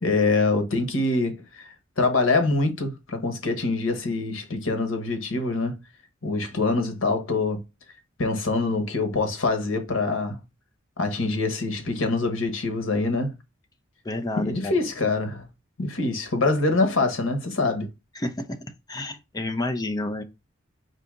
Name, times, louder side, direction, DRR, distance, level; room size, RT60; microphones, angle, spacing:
voice 1, 0.0-5.7 6.2-7.6 8.2-10.4 11.0-13.3 14.4-15.4 15.8-17.9, left 3 dB, 80° left, 1.3 m, -25 dB
voice 2, 14.0-14.7 18.1-18.6 18.9-20.2, left 2 dB, 20° left, 0.6 m, -30 dB
4.7 x 2.8 x 3.7 m
head